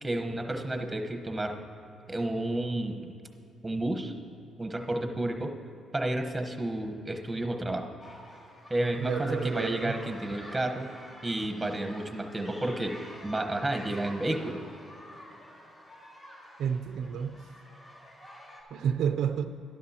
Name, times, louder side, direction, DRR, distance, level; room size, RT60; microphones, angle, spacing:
voice 1, 0.0-1.6 2.1-3.1 3.6-4.1 4.6-5.5 5.9-7.9 8.7-10.9 11.2-12.9 13.2-14.6, right 1 dB, 10° right, 5 dB, 1.1 m, -31 dB
sound 1, 8.0-18.6, equal, 30° left, 2.2 m, -48 dB
voice 2, 9.0-10.0 16.6-17.4 18.7-19.5, right 7 dB, 75° right, 8 dB, 0.4 m, -30 dB
12.0 x 11.5 x 2.9 m, 2.7 s
cardioid pair, 90°, 0 cm